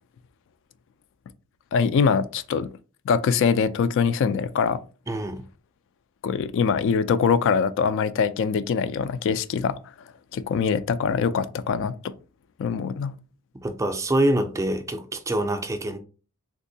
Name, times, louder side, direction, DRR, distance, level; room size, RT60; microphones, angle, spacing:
voice 1, 1.7-2.7 3.1-4.8 6.2-9.7 10.3-12.1 12.6-13.1, left 6 dB, 60° left, 0.3 m, -23 dB
voice 2, 5.1-5.5 13.5-16.0, right 1 dB, 15° right, 0.4 m, -25 dB
3.4 x 2.9 x 2.7 m
head